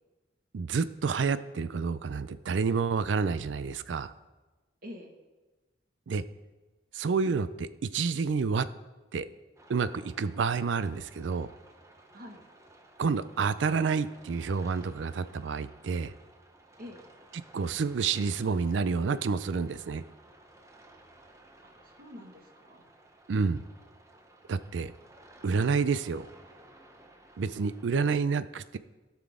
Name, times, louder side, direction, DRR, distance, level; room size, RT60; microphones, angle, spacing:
voice 1, 0.5-4.1 6.1-6.2 6.9-8.6 9.1-9.3 9.7-11.5 13.0-16.1 17.5-20.0 23.3-23.6 24.5-24.9 25.4-26.3 27.4-28.8, right 5 dB, 80° right, 14 dB, 0.4 m, -29 dB
voice 2, 4.8-5.1 12.1-12.4 16.8-17.0 21.6-22.9, left 1 dB, 50° right, 1 dB, 1.6 m, -47 dB
sound 1, 9.6-27.9, right 1 dB, 15° right, 0.8 m, -56 dB
16.5 x 5.9 x 3.7 m, 1.2 s
head